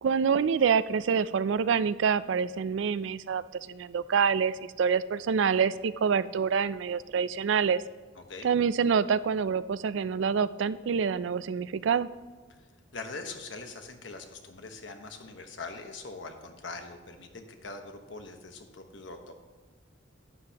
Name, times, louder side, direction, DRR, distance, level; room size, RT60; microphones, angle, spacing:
voice 1, 0.0-3.4 3.7-7.8 8.4-12.1, right 6 dB, 70° right, 16 dB, 0.4 m, -26 dB
voice 2, 8.2-8.5 12.9-19.3, left 3 dB, 70° left, 5 dB, 1.1 m, -42 dB
11.5 x 10.0 x 2.9 m, 1.4 s
head